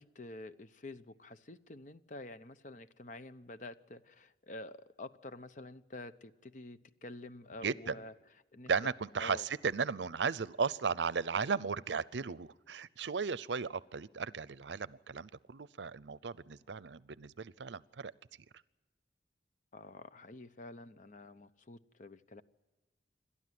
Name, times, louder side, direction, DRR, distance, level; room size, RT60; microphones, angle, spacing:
voice 1, 0.0-8.1 8.5-8.7 9.2-9.4 19.7-22.4, left 2 dB, 45° left, 13 dB, 0.8 m, -48 dB
voice 2, 7.6-8.0 8.7-18.1, right 5 dB, 80° right, 20 dB, 0.6 m, -35 dB
27.5 x 12.5 x 9.4 m, 1.2 s
head